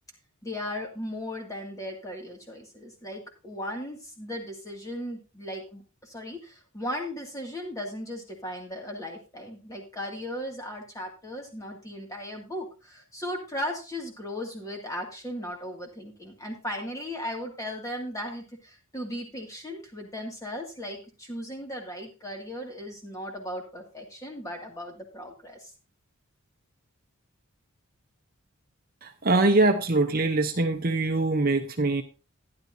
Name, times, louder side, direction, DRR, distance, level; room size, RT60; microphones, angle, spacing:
voice 1, 0.4-25.7, left 1 dB, 15° left, 1 dB, 2.2 m, -37 dB
voice 2, 29.0-32.0, right 2 dB, 40° right, 6 dB, 0.8 m, -23 dB
12.5 x 10.5 x 2.7 m, 0.31 s
head